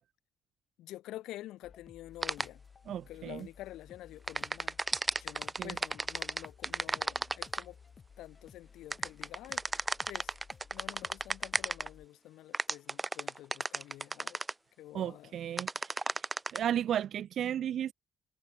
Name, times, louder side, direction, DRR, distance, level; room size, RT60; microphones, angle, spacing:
voice 1, 0.8-2.6 3.1-4.8 5.2-7.8 8.2-9.6 10.1-10.3 10.7-14.4 14.8-15.3, left 15 dB, 90° left, 4.9 m, -48 dB
sound 1, 1.6-14.4, left 6 dB, 45° left, 7.2 m, -58 dB
sound 2, 2.2-2.5 4.3-7.6 8.9-11.9 12.5-14.5 15.6-16.6, right 2 dB, 20° right, 1.4 m, -33 dB
voice 2, 2.9-3.5 5.6-5.8 14.9-16.0 16.5-17.9, right 10 dB, 65° right, 1.7 m, -34 dB
cardioid pair, 90°, 0 cm